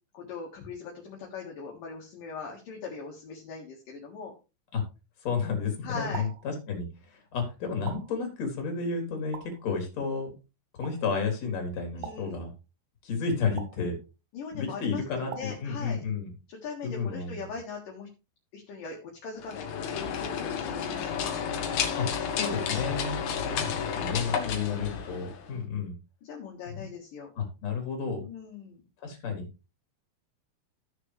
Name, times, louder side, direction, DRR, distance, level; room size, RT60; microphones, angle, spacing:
voice 1, 0.1-4.3 5.8-6.3 11.9-12.4 14.3-16.0 16.5-18.1 18.5-21.4 24.4-24.8 26.2-27.3 28.1-28.8, left 5 dB, 55° left, -1 dB, 2.8 m, -40 dB
voice 2, 5.2-10.3 10.8-12.5 13.0-13.9 14.5-16.3 16.8-17.4 22.0-23.2 23.4-23.7 24.0-25.9 26.7-26.9 27.4-28.2 29.0-29.5, left 5 dB, 40° left, 3 dB, 3.7 m, -32 dB
sound 1, 6.1-6.5 7.9-8.3 9.3-9.7 10.8-11.1 12.0-12.4 13.6-13.9 15.3-15.7, right 9 dB, 75° right, 2.6 m, -43 dB
sound 2, 19.4-25.6, left 7 dB, 85° left, 1.6 m, -31 dB
15.0 x 6.7 x 3.3 m, 0.29 s
omnidirectional pair, 5.6 m